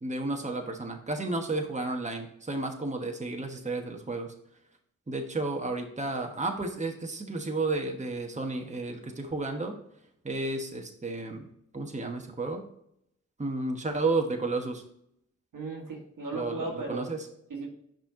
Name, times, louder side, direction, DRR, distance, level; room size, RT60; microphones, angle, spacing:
voice 1, 0.0-4.3 5.1-9.7 10.2-12.6 13.4-14.8 16.3-17.2, right 2 dB, 25° right, 3 dB, 1.2 m, -32 dB
voice 2, 15.5-17.1 17.5-17.7, right 3 dB, 85° right, 0 dB, 1.5 m, -36 dB
5.8 x 4.4 x 3.7 m, 0.74 s
cardioid pair, 45°, 31 cm